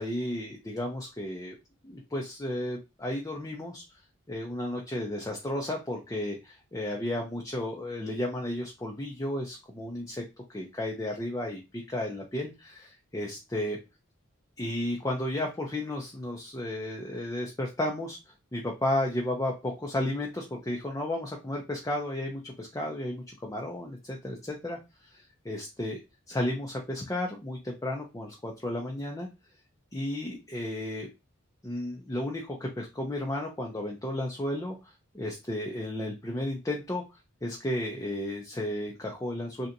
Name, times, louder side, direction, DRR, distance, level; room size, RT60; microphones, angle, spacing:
voice 1, 0.0-1.5 1.8-3.8 4.3-10.2 10.5-13.8 14.6-18.2 18.5-26.0 26.3-29.3 29.9-31.1 31.6-37.0 37.4-39.7, left 1 dB, 15° left, 0 dB, 0.4 m, -33 dB
3.3 x 2.8 x 2.6 m, 0.25 s
head